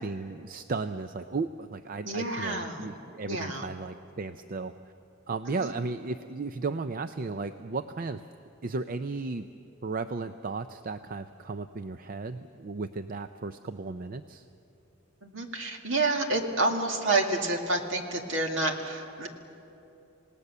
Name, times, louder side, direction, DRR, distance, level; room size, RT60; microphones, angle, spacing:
voice 1, 0.0-4.9 5.3-8.2 8.6-9.5 9.8-14.5, right 3 dB, 45° right, 10 dB, 0.5 m, -35 dB
voice 2, 2.0-2.9 3.3-3.7 5.6-5.7 15.2-19.3, right 2 dB, 65° right, 3 dB, 2.2 m, -29 dB
27.5 x 18.5 x 6.8 m, 2.8 s
head